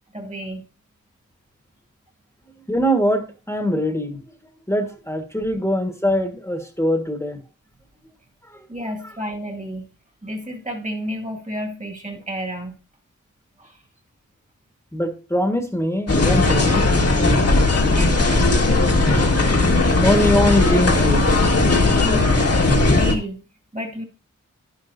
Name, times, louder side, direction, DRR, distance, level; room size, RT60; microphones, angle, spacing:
voice 1, 0.1-0.6 5.4-5.5 8.7-9.9 10.2-12.8 13.6-13.8 17.9-18.6 22.0-23.4 23.7-24.0, equal, 25° right, 1.9 m, -31 dB
voice 2, 2.7-4.2 4.7-7.4 8.5-8.7 14.9-16.9 20.0-22.3, equal, 10° left, 1.5 m, -23 dB
sound 1, 16.1-23.1, left 2 dB, 50° left, 1.8 m, -17 dB
11.0 x 10.5 x 2.7 m
wide cardioid pair, 90°, 32 cm